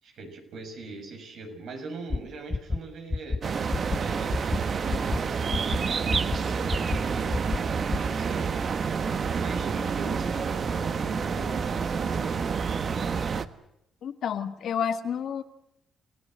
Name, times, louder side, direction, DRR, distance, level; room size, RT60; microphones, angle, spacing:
voice 1, 0.0-3.4 4.0-4.3 4.8-8.6 9.3-12.6, right 3 dB, 75° right, 4 dB, 6.7 m, -41 dB
sound 1, 2.1-2.2 2.5-2.8 3.1-3.4 3.7-4.0 4.3-4.6 4.9-5.2 5.5-5.8 6.1-6.4 6.7-7.0 7.3-7.6 7.9-8.1, left 3 dB, 25° left, 0.9 m, -28 dB
sound 2, 3.4-13.5, right 5 dB, 50° right, 1.3 m, -28 dB
voice 2, 14.0-15.4, left 8 dB, 65° left, 8 dB, 1.9 m, -30 dB
29.5 x 17.0 x 7.8 m, 0.82 s
cardioid pair, 90°, 0 cm